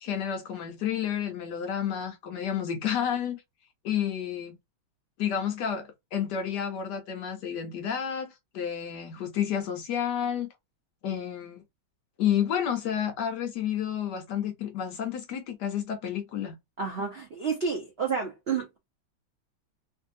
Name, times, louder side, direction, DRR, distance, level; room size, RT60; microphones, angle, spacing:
voice 1, 0.0-3.4 3.8-4.6 5.2-10.5 11.0-11.6 12.2-16.6, left 9 dB, 70° left, 1.0 m, -30 dB
voice 2, 16.8-18.8, right 5 dB, 75° right, 0.5 m, -30 dB
3.1 x 2.6 x 2.4 m
omnidirectional pair, 2.2 m